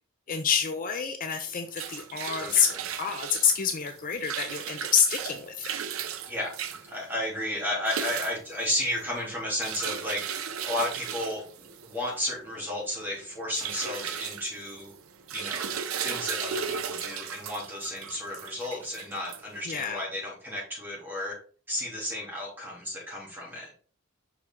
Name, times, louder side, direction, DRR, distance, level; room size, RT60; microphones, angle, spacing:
voice 1, 0.3-2.7 3.0-5.7 19.7-20.0, left 7 dB, 40° left, 7 dB, 0.5 m, -27 dB
sound 1, 1.5-20.0, right 8 dB, 80° right, 0.6 m, -36 dB
voice 2, 2.4-2.8 6.3-14.9 15.3-21.4 21.7-23.7, left 1 dB, 10° right, -4 dB, 2.8 m, -33 dB
5.7 x 4.8 x 3.6 m, 0.42 s
head